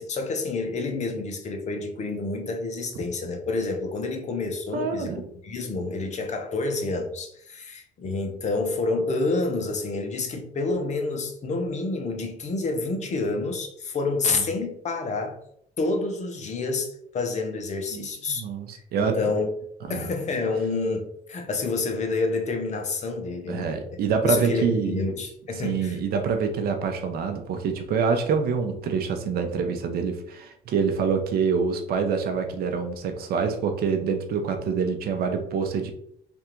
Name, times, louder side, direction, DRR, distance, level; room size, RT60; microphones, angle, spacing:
voice 1, 0.0-5.1 5.4-15.4 15.8-18.4 18.7-19.5 19.9-23.8 24.2-26.0, left 3 dB, 45° left, 5 dB, 0.8 m, -28 dB
voice 2, 4.7-5.3 14.3-14.4 17.9-19.2 19.8-20.1 23.5-25.0 25.6-35.9, right 5 dB, 65° right, 5 dB, 0.8 m, -26 dB
3.5 x 2.5 x 4.4 m, 0.70 s
cardioid pair, 110°, 17 cm